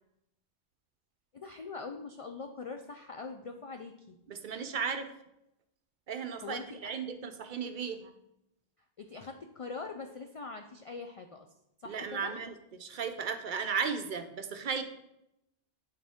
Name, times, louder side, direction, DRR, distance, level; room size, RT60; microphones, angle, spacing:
voice 1, 1.3-4.2 6.4-6.9 9.0-11.5 11.8-12.4, left 4 dB, 60° left, 5 dB, 0.3 m, -43 dB
voice 2, 4.3-5.1 6.1-8.1 11.9-14.8, right 6 dB, 60° right, 8 dB, 0.6 m, -35 dB
8.7 x 4.1 x 3.5 m, 0.85 s
omnidirectional pair, 1.1 m